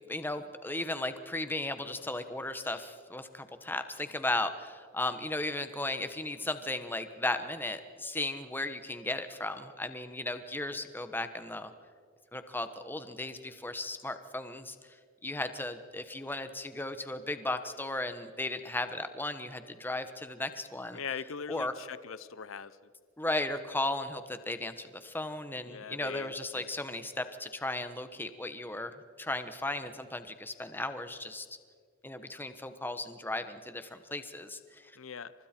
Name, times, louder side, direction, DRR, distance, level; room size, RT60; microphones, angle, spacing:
voice 1, 0.1-11.7 12.3-14.8 15.2-21.0 21.5-21.7 23.2-28.9 29.2-31.5 32.0-34.9, left 2 dB, 10° left, 9 dB, 1.2 m, -36 dB
voice 2, 20.9-22.8 25.6-26.7 35.0-35.3, left 6 dB, 80° left, 16 dB, 0.7 m, -41 dB
29.5 x 26.0 x 4.5 m, 2.1 s
head